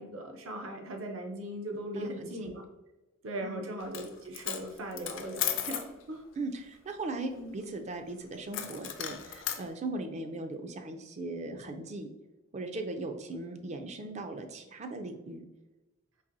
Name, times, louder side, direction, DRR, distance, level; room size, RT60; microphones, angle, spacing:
voice 1, 0.0-2.6 3.2-6.2 7.3-7.6, right 1 dB, 75° right, 3 dB, 0.6 m, -39 dB
voice 2, 1.9-2.5 3.4-3.6 6.4-12.1 12.5-15.4, right 2 dB, 35° right, 5 dB, 0.4 m, -38 dB
Coin (dropping), 3.8-4.1 4.3-5.9 8.5-9.6, left 10 dB, 65° left, 0.4 m, -35 dB
4.1 x 3.0 x 2.6 m, 1.1 s
head